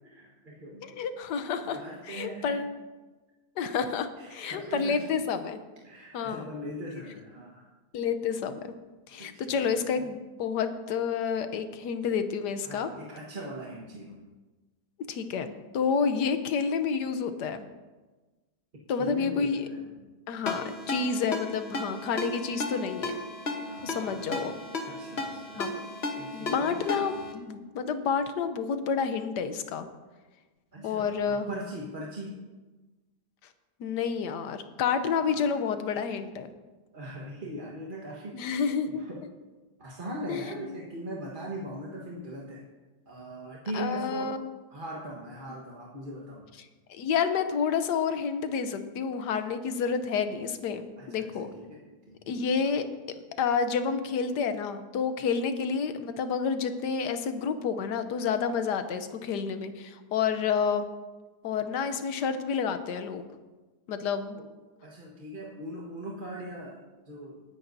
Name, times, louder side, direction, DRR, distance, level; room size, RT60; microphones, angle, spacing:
voice 1, 0.0-1.0 1.6-2.7 3.8-3.9 4.2-5.2 5.8-7.7 9.2-9.7 12.6-14.3 18.9-20.0 23.7-24.6 24.8-25.7 26.2-27.3 30.7-32.4 35.1-35.6 36.9-38.6 38.9-39.3 39.8-42.6 43.1-44.4 44.7-46.5 51.0-52.2 52.6-52.7 64.3-64.5 64.8-67.4, right 1 dB, 30° right, -4 dB, 1.4 m, -40 dB
voice 2, 1.0-1.8 2.1-2.7 3.6-5.6 6.1-6.4 7.9-8.6 9.1-12.9 15.1-17.7 18.9-19.7 20.3-23.2 23.8-24.5 25.6-25.8 26.3-29.9 30.8-31.5 33.8-36.5 38.3-39.0 40.3-40.5 43.7-44.4 46.9-51.5 52.3-52.8 53.4-60.9 61.4-63.3 63.9-64.4, left 6 dB, 85° left, 9 dB, 1.4 m, -29 dB
Ringtone, 20.5-27.3, left 2 dB, 40° left, 1.3 m, -35 dB
18.5 x 10.0 x 2.7 m, 1.2 s
omnidirectional pair, 1.8 m